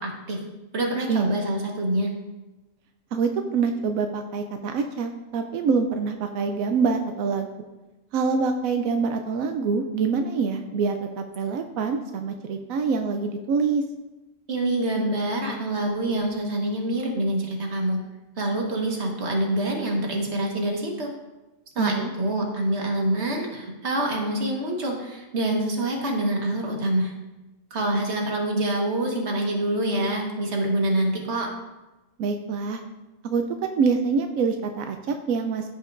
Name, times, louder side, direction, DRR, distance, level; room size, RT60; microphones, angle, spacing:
voice 1, 0.0-0.4 0.7-2.1 14.5-18.0 18.4-21.1 21.7-27.1 27.7-31.5, right 1 dB, 55° right, 0 dB, 1.6 m, -26 dB
voice 2, 3.1-7.5 8.1-13.8 21.8-22.1 32.2-32.8 33.2-35.7, right 5 dB, 90° right, 6 dB, 1.0 m, -25 dB
15.0 x 5.2 x 2.5 m, 1.1 s
omnidirectional pair, 1.4 m